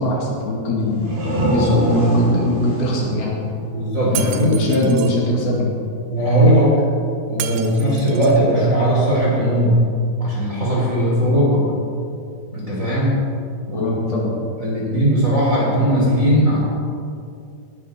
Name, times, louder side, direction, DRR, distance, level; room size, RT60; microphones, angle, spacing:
voice 1, 0.0-3.4 4.0-5.8 13.7-14.4, left 1 dB, 70° left, -2 dB, 3.7 m, -22 dB
sound 1, 0.8-4.4, right 1 dB, 45° right, 3.4 m, -24 dB
voice 2, 1.2-1.8 3.7-4.7 6.1-6.8 7.3-9.7 10.2-11.6 12.5-13.2 13.7-13.9 14.6-16.6, equal, 20° right, -7 dB, 3.4 m, -18 dB
Shatter, 4.2-5.1 7.4-8.5, right 11 dB, 80° right, 2.7 m, -32 dB
19.5 x 11.0 x 3.8 m, 2.5 s
omnidirectional pair, 4.7 m